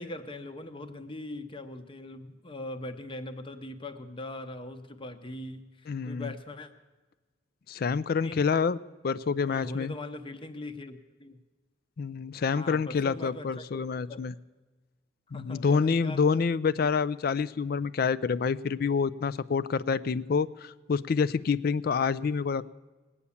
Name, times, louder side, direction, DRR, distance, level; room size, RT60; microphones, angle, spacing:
voice 1, 0.0-6.7 8.2-8.4 9.5-11.4 12.5-14.2 15.3-16.2, left 2 dB, 25° left, 9 dB, 0.8 m, -41 dB
voice 2, 5.9-6.3 7.7-8.8 9.0-9.9 12.0-14.3 15.3-22.7, left 5 dB, 50° left, 17 dB, 0.4 m, -27 dB
19.5 x 8.4 x 7.0 m, 1.3 s
head